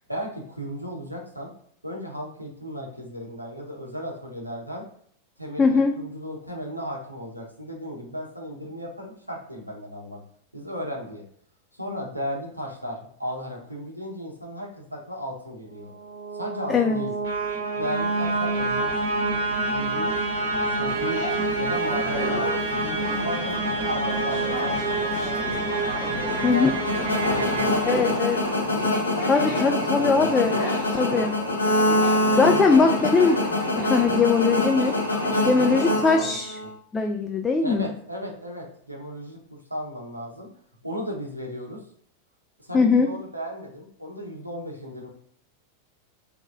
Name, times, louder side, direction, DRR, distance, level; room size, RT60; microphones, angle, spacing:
voice 1, 0.1-1.5 1.8-4.8 5.4-10.2 10.5-11.2 11.7-15.9 16.3-17.1 17.7-18.9 19.6-20.1 20.6-21.2 21.6-25.6 26.1-26.7 27.2-28.2 28.7-30.7 31.1-31.3 31.9-33.0 35.3-36.4 37.6-40.5 40.8-41.8 42.6-45.1, equal, 90° right, -1 dB, 0.8 m, -35 dB
voice 2, 5.6-6.0 16.7-17.0 26.4-26.7 27.9-28.4 29.3-30.6 31.0-31.4 32.4-33.4 33.8-34.9 35.5-36.5 36.9-37.9 42.7-43.1, left 4 dB, 15° left, 5 dB, 0.3 m, -20 dB
sound 1, 15.8-28.8, right 2 dB, 65° right, 1.1 m, -27 dB
sound 2, 20.9-35.8, left 3 dB, 50° left, 0.9 m, -36 dB
sound 3, 26.3-36.7, left 1 dB, 80° left, 0.8 m, -25 dB
3.4 x 3.0 x 2.5 m, 0.63 s
figure-of-eight pair, 90°, 0 cm